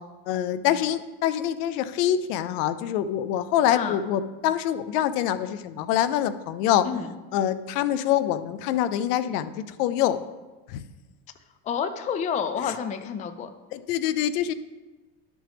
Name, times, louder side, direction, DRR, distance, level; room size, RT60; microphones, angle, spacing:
voice 1, 0.3-6.9 7.3-10.2 10.7-10.8 12.7-12.8 13.7-14.5, left 11 dB, 85° left, 14 dB, 0.7 m, -25 dB
voice 2, 11.7-13.5, left 7 dB, 20° left, 9 dB, 0.3 m, -29 dB
12.0 x 6.2 x 3.5 m, 1.2 s
supercardioid pair, 130°, 46 cm